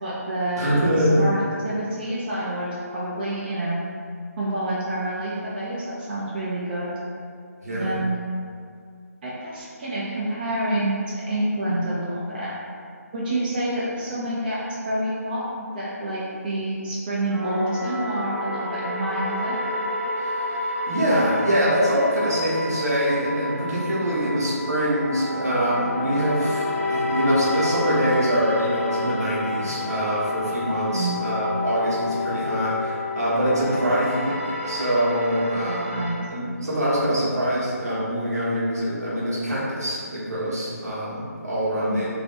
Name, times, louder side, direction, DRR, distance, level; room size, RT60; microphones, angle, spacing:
voice 1, 0.0-0.7 1.1-1.4 1.6-3.9 4.4-6.9 7.7-8.2 9.2-11.0 11.3-12.5 13.1-14.6 14.8-19.6 30.9-31.2 35.5-36.2 41.7-42.0, right 1 dB, 35° right, -7 dB, 0.4 m, -28 dB
voice 2, 0.6-1.3 7.6-7.9 20.2-20.6 20.9-35.9 36.3-42.1, equal, 80° right, -8 dB, 1.0 m, -24 dB
sound 1, 17.3-36.1, left 2 dB, 65° left, 0.8 m, -29 dB
2.4 x 2.1 x 2.5 m, 2.2 s
figure-of-eight pair, 160°, 9 cm